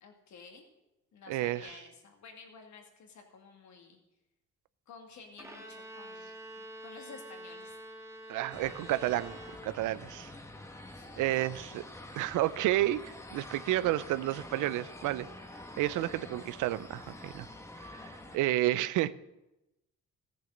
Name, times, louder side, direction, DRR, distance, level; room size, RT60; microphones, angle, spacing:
voice 1, 0.0-0.7 1.1-4.0 4.9-7.8 10.9-11.7, left 5 dB, 70° left, 2.3 m, -52 dB
voice 2, 1.3-1.7 8.3-9.4 9.6-10.3 11.2-11.8 12.2-15.3 15.8-17.5 17.8-19.1, right 15 dB, 90° right, 0.5 m, -31 dB
Bowed string instrument, 5.4-10.1, right 1 dB, 10° right, 1.6 m, -47 dB
sound 1, 8.5-18.4, left 2 dB, 10° left, 1.2 m, -47 dB
14.5 x 7.0 x 6.4 m
cardioid pair, 90°, 30 cm